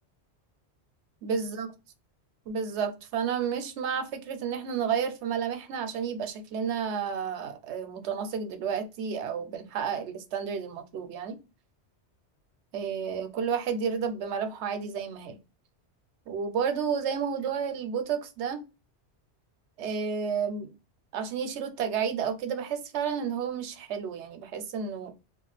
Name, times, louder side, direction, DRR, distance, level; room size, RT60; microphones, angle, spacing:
voice 1, 1.2-1.7 2.5-11.4 12.7-15.4 16.3-18.6 19.8-20.7 21.1-25.1, right 7 dB, 85° right, 0.9 m, -31 dB
2.4 x 2.3 x 3.9 m
omnidirectional pair, 1.1 m